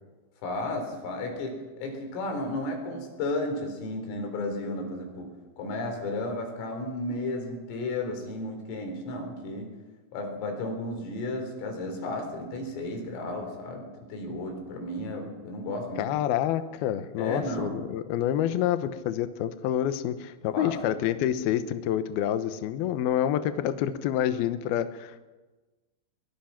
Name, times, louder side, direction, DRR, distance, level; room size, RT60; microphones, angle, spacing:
voice 1, 0.4-5.3 5.6-9.7 10.1-16.0 17.2-17.8 20.5-21.1, left 2 dB, 75° left, 4 dB, 6.5 m, -33 dB
voice 2, 16.0-25.2, left 11 dB, 90° left, 10 dB, 2.1 m, -28 dB
22.5 x 21.0 x 5.9 m, 1.2 s
omnidirectional pair, 6.0 m